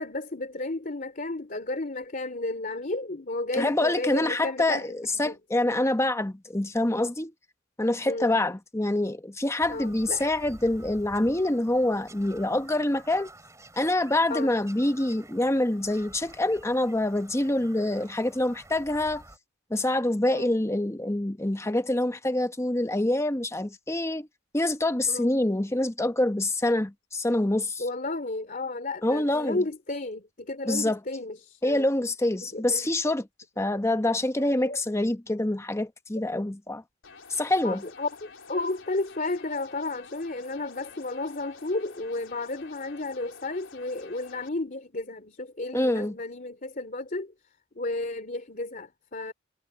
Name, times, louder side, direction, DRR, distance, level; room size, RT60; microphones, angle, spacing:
voice 1, 0.0-5.0 5.2-5.4 8.0-8.4 9.7-10.3 14.3-14.5 20.3-20.5 25.1-25.3 27.8-31.9 32.4-32.9 34.4-34.8 37.6-47.3 47.7-49.3, left 2 dB, 45° left, 3.0 m, -33 dB
voice 2, 3.5-7.3 7.8-13.3 13.8-19.2 19.7-24.3 24.5-27.8 29.0-29.6 30.7-31.0 31.6-33.3 33.6-36.8 37.3-37.8 45.7-46.2, left 1 dB, 15° left, 1.0 m, -26 dB
Bird vocalization bird call bird song, 9.6-19.4, right 2 dB, 15° right, 4.9 m, -50 dB
sound 1, 37.0-44.5, left 5 dB, 80° left, 4.4 m, -49 dB
head